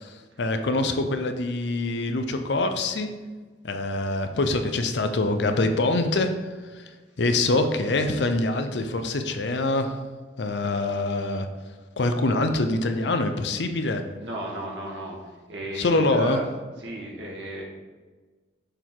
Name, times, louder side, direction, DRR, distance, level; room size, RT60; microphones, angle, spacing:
voice 1, 0.0-3.1 3.6-10.0 10.4-11.5 12.0-14.0 15.7-16.4, left 2 dB, 70° left, 7 dB, 0.6 m, -25 dB
voice 2, 14.2-15.2 15.5-16.4 16.8-17.6, equal, 90° right, -3 dB, 1.8 m, -33 dB
6.6 x 4.6 x 3.8 m, 1.4 s
head